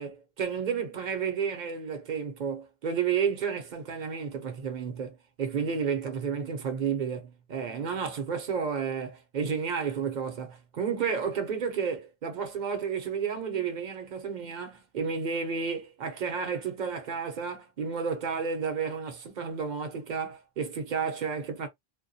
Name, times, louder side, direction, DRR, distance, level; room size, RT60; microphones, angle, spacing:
voice 1, 0.0-21.7, right 6 dB, 50° right, 0.8 m, -31 dB
2.2 x 2.2 x 2.6 m
omnidirectional pair, 1.0 m